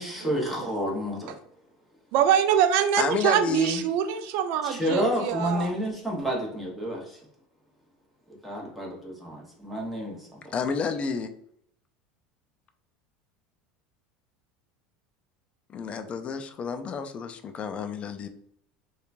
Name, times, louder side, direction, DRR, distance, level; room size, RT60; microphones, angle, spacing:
voice 1, 0.0-1.4 4.6-7.2 8.4-10.5, equal, ahead, -3 dB, 1.0 m, -30 dB
voice 2, 2.1-5.7, right 9 dB, 65° right, 10 dB, 0.3 m, -24 dB
voice 3, 3.0-3.8 10.5-11.3 15.7-18.3, left 6 dB, 35° left, 8 dB, 0.3 m, -30 dB
2.8 x 2.2 x 2.5 m, 0.71 s
supercardioid pair, 100°, 4 cm